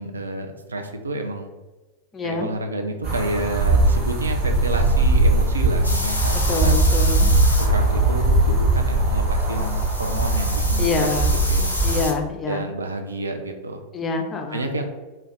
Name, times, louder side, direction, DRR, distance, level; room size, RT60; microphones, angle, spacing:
voice 1, 0.0-1.5 2.2-6.4 6.6-6.7 7.6-11.1 11.5-11.7 12.5-13.8 14.5-14.8, right 2 dB, 75° right, 4 dB, 0.3 m, -29 dB
voice 2, 2.1-2.5 6.5-7.3 10.8-11.3 11.8-12.6 13.9-14.7, left 4 dB, 20° left, 3 dB, 0.4 m, -26 dB
sound 1, 3.0-12.0, right 2 dB, 40° right, 0.9 m, -20 dB
sound 2, 5.8-7.7 9.4-12.1, left 1 dB, 85° left, 0.4 m, -29 dB
2.4 x 2.1 x 3.9 m, 1.2 s
figure-of-eight pair, 90°, 0 cm